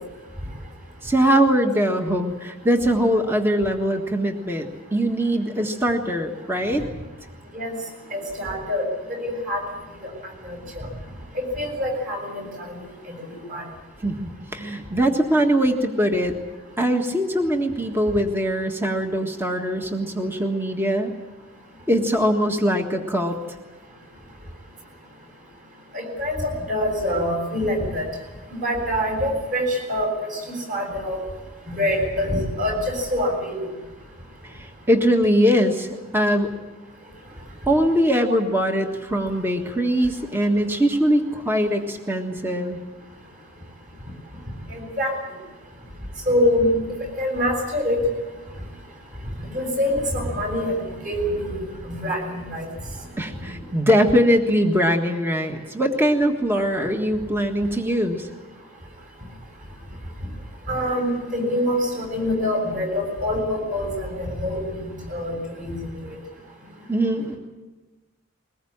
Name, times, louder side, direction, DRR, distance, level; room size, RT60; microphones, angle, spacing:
voice 1, 1.0-6.9 14.0-16.3 16.8-21.1 21.9-23.4 34.4-36.5 37.7-42.8 53.2-58.3 66.9-67.3, equal, 10° right, 3 dB, 1.6 m, -22 dB
voice 2, 8.1-8.9 9.2-9.6 10.0-10.1 10.4-10.9 11.6-12.8 13.5-13.6 25.9-28.0 28.5-30.4 30.7-31.2 31.7-33.6 44.7-45.2 46.3-46.7 47.2-48.0 49.4-51.6 51.9-52.7 60.7-64.8 65.1-65.8 66.0-66.2, left 1 dB, 35° right, 2 dB, 7.2 m, -25 dB
22.0 x 20.0 x 8.8 m, 1.2 s
head